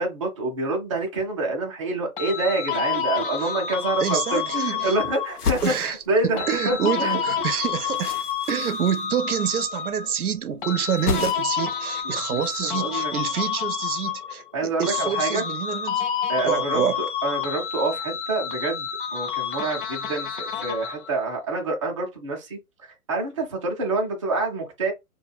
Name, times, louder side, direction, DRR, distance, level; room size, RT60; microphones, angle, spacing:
voice 1, 0.0-7.2 12.3-13.1 14.5-15.5 16.3-16.8 17.2-22.6 23.1-24.9, right 2 dB, 25° right, 0.4 m, -27 dB
sound 1, 2.2-5.5 6.4-10.2 10.6-14.6 14.8-21.2, left 8 dB, 40° left, 0.4 m, -29 dB
sound 2, 3.7-3.8 4.0-4.9 5.2-6.9 7.1-9.7 9.9-10.4 10.7-11.7 12.0-12.8, left 6 dB, 90° left, 0.7 m, -33 dB
voice 2, 4.0-5.0 5.6-6.0 6.5-8.1 8.5-16.0 16.4-17.0, right 8 dB, 75° right, 0.6 m, -27 dB
2.2 x 2.1 x 3.3 m
figure-of-eight pair, 125°, 45 cm